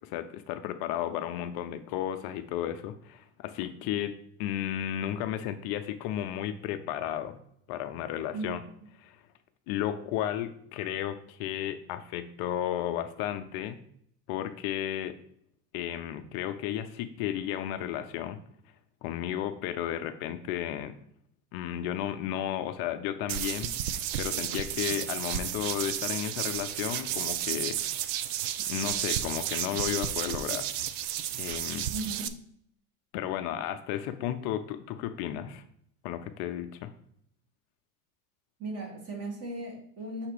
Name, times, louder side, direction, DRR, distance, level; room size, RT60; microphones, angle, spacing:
voice 1, 0.0-4.1 4.4-7.4 7.7-8.6 9.0-9.2 9.7-13.8 14.3-15.2 15.7-18.4 19.0-21.0 21.5-23.7 24.2-27.8 28.7-30.7 31.4-31.9 33.1-35.6 36.0-36.9, left 11 dB, 60° left, 9 dB, 0.6 m, -33 dB
sound 1, 23.3-32.3, right 11 dB, 75° right, 0.6 m, -32 dB
voice 2, 31.9-32.3 38.6-40.3, right 2 dB, 35° right, 1 dB, 2.0 m, -36 dB
6.6 x 2.9 x 4.9 m, 0.67 s
supercardioid pair, 100°, 44 cm